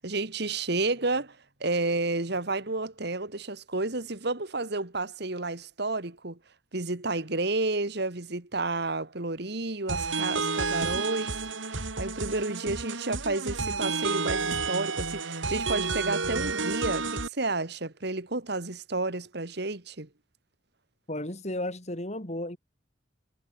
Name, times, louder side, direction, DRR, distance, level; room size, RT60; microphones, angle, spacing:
voice 1, 0.0-6.4 6.7-11.4 12.0-20.1, right 2 dB, 60° right, 2.0 m, -31 dB
sound 1, 9.9-17.3, right 4 dB, 85° right, 3.3 m, -30 dB
voice 2, 21.1-22.6, left 1 dB, 35° left, 4.0 m, -33 dB
head